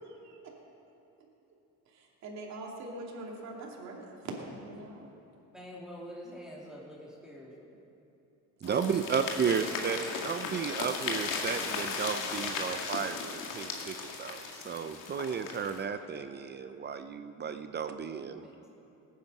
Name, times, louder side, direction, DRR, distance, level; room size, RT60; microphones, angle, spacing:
voice 1, 1.9-4.1 4.6-5.1 8.6-8.9, right 2 dB, 60° right, -2 dB, 2.6 m, -43 dB
voice 2, 5.5-7.5 18.3-18.7, equal, ahead, -6 dB, 2.6 m, -46 dB
sound 1, 8.6-15.8, left 5 dB, 80° left, 1.9 m, -36 dB
voice 3, 8.6-10.0 10.2-18.5, right 6 dB, 30° right, 9 dB, 0.6 m, -33 dB
18.5 x 9.5 x 5.5 m, 2.8 s
cardioid pair, 115°, 32 cm